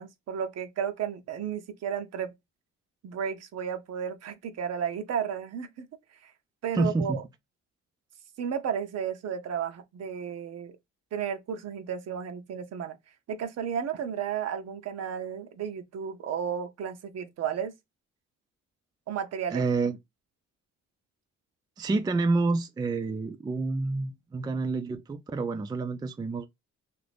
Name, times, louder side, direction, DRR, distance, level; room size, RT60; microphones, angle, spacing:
voice 1, 0.0-2.3 3.0-5.9 6.1-6.3 6.6-7.2 8.4-10.8 11.1-13.0 13.3-17.7 19.1-19.6, right 8 dB, 55° right, 0.7 m, -33 dB
voice 2, 6.8-7.2 19.5-20.0 21.8-26.5, right 3 dB, 15° right, 0.3 m, -28 dB
2.6 x 2.5 x 3.3 m
cardioid pair, 90°, 30 cm